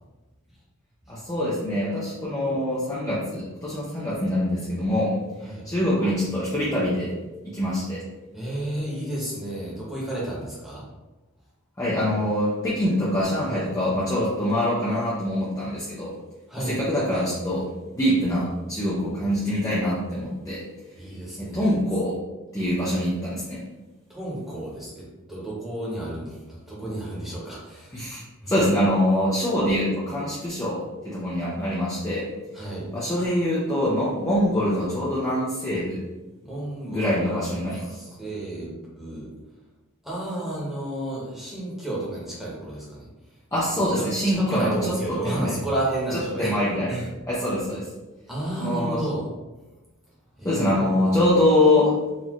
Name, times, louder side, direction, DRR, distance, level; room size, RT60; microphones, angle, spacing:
voice 1, 1.1-5.2 5.4-7.1 7.4-8.0 11.8-16.1 16.6-17.6 17.9-20.6 21.4-22.2 22.5-23.6 27.9-32.3 32.9-36.0 36.9-37.9 43.5-44.7 45.2-45.5 46.1-46.9 47.3-47.9 48.6-49.0 50.4-51.9, left 1 dB, 15° left, -8 dB, 0.6 m, -24 dB
voice 2, 8.3-10.8 16.5-16.8 21.0-21.7 24.1-28.0 28.4-28.6 32.5-32.9 36.4-37.5 37.8-39.3 40.0-43.1 44.0-46.5 46.9-47.1 48.3-49.3 50.4-50.9, right 1 dB, ahead, -7 dB, 1.1 m, -32 dB
4.0 x 2.7 x 3.0 m, 1.1 s
head